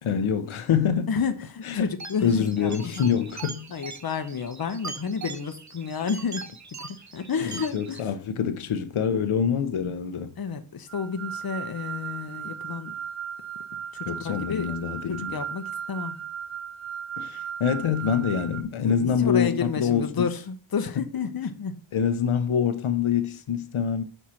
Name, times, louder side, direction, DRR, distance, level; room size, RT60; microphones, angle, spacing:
voice 1, 0.0-1.1 1.7-1.8 2.2-3.7 7.4-10.3 14.1-15.4 17.2-20.2 21.9-24.0, left 7 dB, 80° left, 0.7 m, -25 dB
voice 2, 1.1-2.9 3.7-8.1 9.8-10.0 10.4-13.0 13.7-14.7 15.1-16.2 18.8-21.8, left 6 dB, 50° left, 0.8 m, -31 dB
sound 1, 2.0-8.0, right 4 dB, 35° right, 0.7 m, -41 dB
sound 2, 10.9-18.6, right 8 dB, 75° right, 0.9 m, -36 dB
5.5 x 4.4 x 6.2 m
wide cardioid pair, 115°, 49 cm